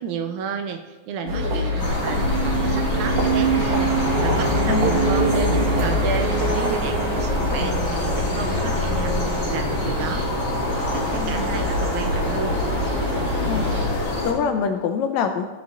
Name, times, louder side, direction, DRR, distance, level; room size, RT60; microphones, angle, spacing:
voice 1, 0.0-9.1 9.5-10.3 10.9-12.6, right 7 dB, 75° right, 7 dB, 1.9 m, -32 dB
sound 1, 1.3-13.8, right 1 dB, 45° right, 2.3 m, -25 dB
sound 2, 1.8-14.3, left 2 dB, 40° left, 2.2 m, -26 dB
sound 3, 4.0-10.1, equal, 15° left, 2.9 m, -30 dB
voice 2, 4.7-5.1 10.9-11.5 13.4-15.5, left 6 dB, 75° left, 5 dB, 1.9 m, -26 dB
14.0 x 7.3 x 3.8 m, 1.1 s
omnidirectional pair, 3.6 m